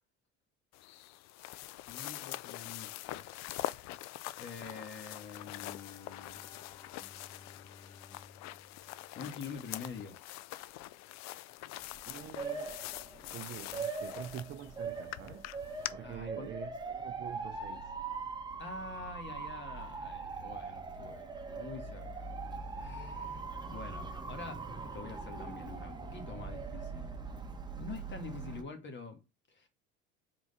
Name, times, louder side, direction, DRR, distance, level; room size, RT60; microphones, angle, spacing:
sound 1, 0.7-15.9, left 16 dB, 60° left, 0.5 m, -44 dB
voice 1, 1.9-3.3 4.4-6.5 9.1-10.2 13.3-13.7 16.0-16.5 18.6-22.3 22.8-23.4 23.7-24.6 24.9-27.1 27.8-29.2 29.5-29.7, left 4 dB, 35° left, 1.8 m, -46 dB
Bowed string instrument, 5.5-9.9, left 4 dB, 15° left, 0.7 m, -58 dB
Motor vehicle (road) / Siren, 11.8-28.6, right 4 dB, 15° right, 1.1 m, -41 dB
voice 2, 12.0-12.8 13.3-15.5 15.9-17.9, right 11 dB, 40° right, 0.6 m, -46 dB
4.7 x 4.0 x 5.5 m
supercardioid pair, 90°, 31 cm